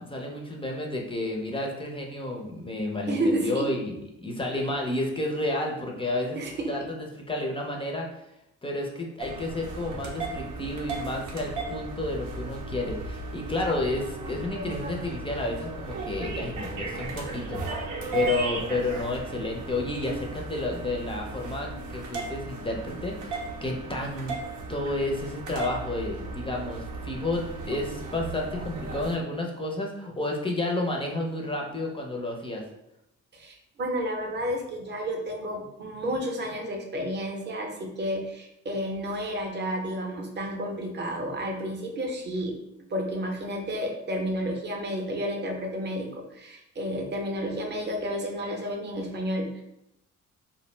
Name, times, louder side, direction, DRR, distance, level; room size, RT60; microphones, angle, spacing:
voice 1, 0.0-6.4 6.7-8.1 8.6-24.4 24.7-32.6, left 2 dB, 20° left, 0 dB, 0.4 m, -31 dB
voice 2, 3.1-3.7 6.4-6.7 33.3-42.5 42.9-49.6, equal, 35° right, 2 dB, 0.6 m, -31 dB
sound 1, 9.2-29.2, right 2 dB, 90° right, 0.6 m, -36 dB
2.4 x 2.0 x 3.1 m, 0.84 s
cardioid pair, 90°, 30 cm